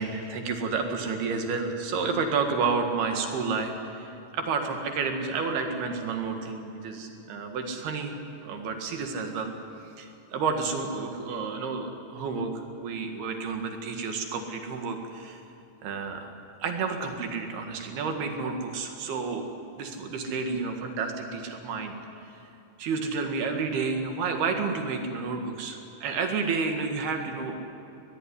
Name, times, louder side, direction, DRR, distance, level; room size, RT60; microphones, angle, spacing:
voice 1, 0.0-8.1 8.4-9.5 10.0-15.4 15.8-16.3 16.6-19.5 19.8-21.9 22.8-27.5, right 4 dB, 60° right, 4 dB, 3.5 m, -30 dB
21.5 x 20.5 x 9.9 m, 2.8 s
omnidirectional pair, 5.7 m